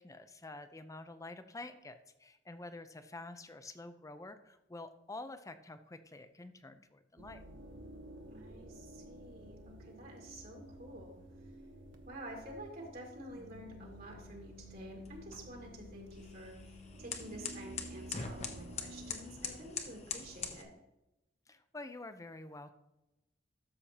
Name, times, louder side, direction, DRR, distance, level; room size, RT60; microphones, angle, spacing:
voice 1, 0.0-7.4 21.5-22.7, left 2 dB, 15° left, 10 dB, 0.6 m, -48 dB
horror ambiance, 7.2-19.1, equal, 85° right, 1.1 m, -51 dB
voice 2, 8.3-11.2 12.0-20.7, right 1 dB, 55° right, 0 dB, 1.9 m, -49 dB
sound 1, 13.8-20.6, left 5 dB, 35° left, 1.0 m, -45 dB
13.0 x 6.9 x 2.9 m, 0.92 s
head